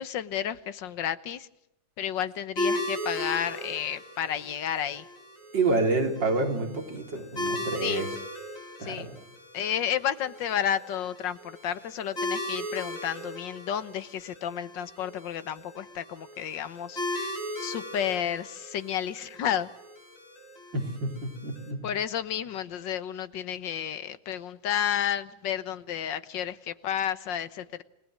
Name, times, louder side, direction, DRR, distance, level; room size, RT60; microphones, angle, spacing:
voice 1, 0.0-1.5 2.0-5.1 7.8-8.0 8.8-9.1 9.5-19.7 21.8-27.8, left 9 dB, 85° left, 14 dB, 1.8 m, -31 dB
sound 1, 2.6-21.7, left 1 dB, 35° left, 4.6 m, -37 dB
voice 2, 5.5-8.1 8.8-9.1 20.7-21.8, right 2 dB, 90° right, 4 dB, 4.2 m, -28 dB
28.5 x 19.0 x 7.6 m, 0.83 s
omnidirectional pair, 1.9 m